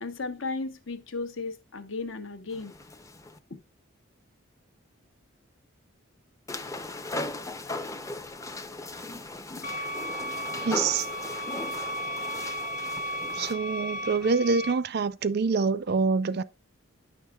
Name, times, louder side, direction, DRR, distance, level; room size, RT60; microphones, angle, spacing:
voice 1, 0.0-2.7 3.5-3.6, left 3 dB, 65° left, 1.0 m, -35 dB
sound 1, 2.5-3.4 6.5-13.6, left 2 dB, 15° left, 0.5 m, -37 dB
sound 2, 9.6-14.7, equal, 40° left, 1.4 m, -34 dB
voice 2, 10.6-11.1 13.3-16.4, right 4 dB, 50° right, 0.4 m, -26 dB
9.8 x 6.4 x 2.3 m
head